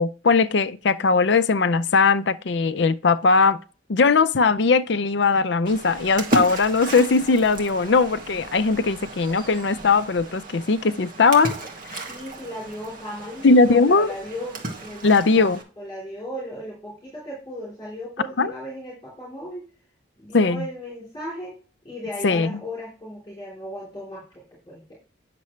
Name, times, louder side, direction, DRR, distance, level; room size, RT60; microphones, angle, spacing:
voice 1, 0.0-3.6 3.9-11.5 11.9-12.0 13.4-14.1 15.0-15.6 18.4-18.5 20.3-20.7 22.2-22.5, left 4 dB, 70° left, 0.5 m, -19 dB
Splash splatter, 5.6-15.6, right 2 dB, 45° right, 1.7 m, -34 dB
voice 2, 12.1-15.5 15.8-19.6 20.2-21.6 21.8-24.9, equal, 25° left, 3.3 m, -36 dB
9.5 x 6.8 x 3.2 m
head